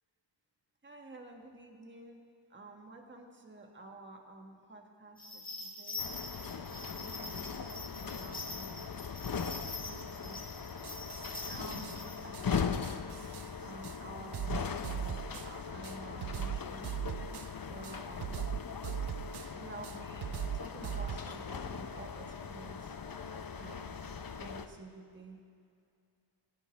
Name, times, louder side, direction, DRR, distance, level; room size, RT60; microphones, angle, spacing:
voice 1, 0.8-8.9 9.7-10.7 11.4-13.0 13.6-16.9 17.3-17.4 17.6-18.5 19.5-23.0 23.2-23.3 23.6-25.4, right 2 dB, 25° right, 2 dB, 1.5 m, -51 dB
sound 1, 5.2-12.2, left 3 dB, 20° left, 1.8 m, -44 dB
sound 2, 6.0-24.7, left 6 dB, 45° left, 0.8 m, -40 dB
sound 3, 10.8-11.5 11.8-12.0 12.3-12.5 12.8-13.5 13.8-14.0 14.3-15.5 15.8-17.5 17.8-19.5 19.8-21.2, right 10 dB, 55° right, 0.5 m, -39 dB
22.0 x 17.0 x 3.5 m, 2.4 s
wide cardioid pair, 135°, 48 cm